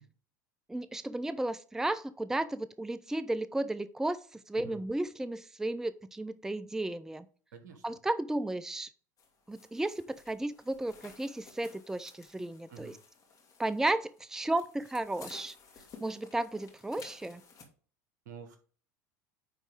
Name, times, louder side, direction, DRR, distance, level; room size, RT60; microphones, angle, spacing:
voice 1, 0.7-7.3 7.8-8.9 9.5-13.0 13.6-15.5 16.0-17.4, right 2 dB, 5° right, 14 dB, 0.5 m, -34 dB
voice 2, 7.5-7.8 12.7-13.0 18.2-18.6, right 7 dB, 75° right, 8 dB, 1.5 m, -48 dB
sound 1, 9.2-17.6, left 5 dB, 40° left, 2.4 m, -55 dB
9.5 x 4.0 x 3.6 m, 0.41 s
hypercardioid pair, 80°, 10 cm